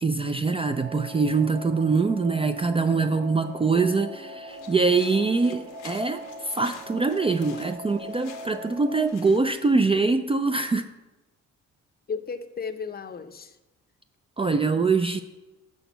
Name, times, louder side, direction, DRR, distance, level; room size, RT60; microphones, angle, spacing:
voice 1, 0.0-10.9 14.4-15.2, right 4 dB, 20° right, 8 dB, 0.4 m, -24 dB
sound 1, 0.7-9.1, right 1 dB, 75° right, 1.3 m, -41 dB
sound 2, 4.5-9.7, left 9 dB, 90° left, 0.9 m, -50 dB
voice 2, 7.8-8.4 12.1-13.6, left 5 dB, 30° left, 9 dB, 0.6 m, -35 dB
6.2 x 5.0 x 6.8 m, 1.1 s
cardioid pair, 90°, 30 cm